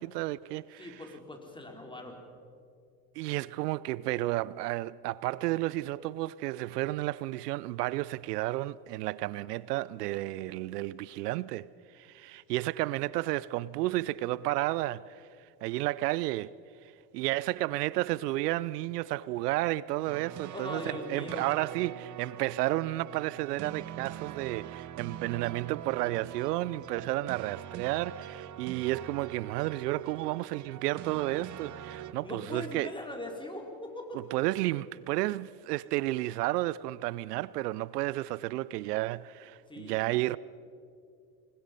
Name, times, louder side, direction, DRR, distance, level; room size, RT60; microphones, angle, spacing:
voice 1, 0.0-1.0 3.2-11.7 11.9-15.3 15.6-16.5 17.1-32.9 34.1-40.4, right 17 dB, 80° right, 0.6 m, -32 dB
voice 2, 0.8-2.2 20.5-21.5 32.2-34.2 39.7-40.1, left 1 dB, 10° left, 4.8 m, -41 dB
sound 1, 20.1-32.1, right 11 dB, 40° right, 0.9 m, -43 dB
27.0 x 20.5 x 5.4 m
hypercardioid pair, 65°, 47 cm